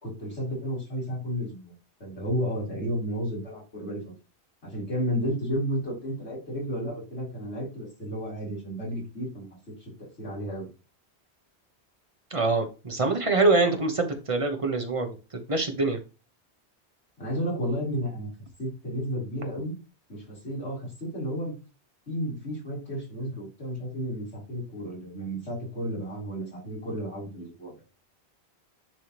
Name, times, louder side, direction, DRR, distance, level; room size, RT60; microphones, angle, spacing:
voice 1, 0.0-1.7 2.0-4.0 4.6-9.5 9.8-9.9 10.2-10.7 17.2-18.3 18.6-19.8 20.1-21.6 22.1-27.7, equal, 75° left, -5 dB, 3.9 m, -32 dB
voice 2, 12.3-15.1 15.5-16.0, right 3 dB, 30° right, 5 dB, 1.1 m, -24 dB
10.5 x 3.5 x 3.0 m, 0.31 s
omnidirectional pair, 1.1 m